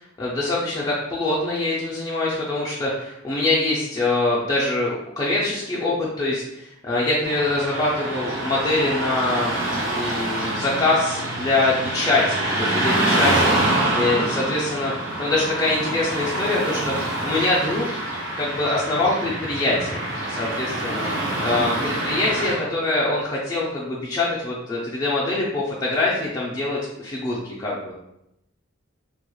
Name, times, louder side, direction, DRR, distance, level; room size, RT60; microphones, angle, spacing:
voice 1, 0.2-9.5 9.9-13.6 13.9-17.8 18.4-20.0 20.3-21.1 21.4-27.9, left 2 dB, 20° left, -6 dB, 0.3 m, -24 dB
Car passing by / Traffic noise roadway noise, 7.2-22.6, right 1 dB, 65° right, 0.7 m, -26 dB
2.2 x 2.0 x 2.9 m, 0.84 s
head